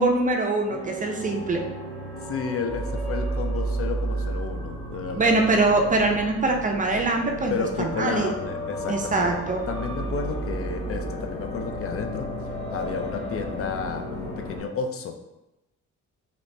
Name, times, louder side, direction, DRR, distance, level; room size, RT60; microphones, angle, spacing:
voice 1, 0.0-1.6 5.2-8.3 8.9-9.6, right 2 dB, 25° right, 3 dB, 0.4 m, -23 dB
sound 1, 0.7-14.6, left 2 dB, 20° left, 0.8 m, -36 dB
sound 2, 0.9-14.6, right 3 dB, 90° left, 1.1 m, -35 dB
voice 2, 2.3-5.4 7.5-9.3 9.7-15.1, left 5 dB, 50° left, 6 dB, 0.4 m, -32 dB
3.2 x 2.9 x 2.6 m, 0.97 s
cardioid pair, 90°, 30 cm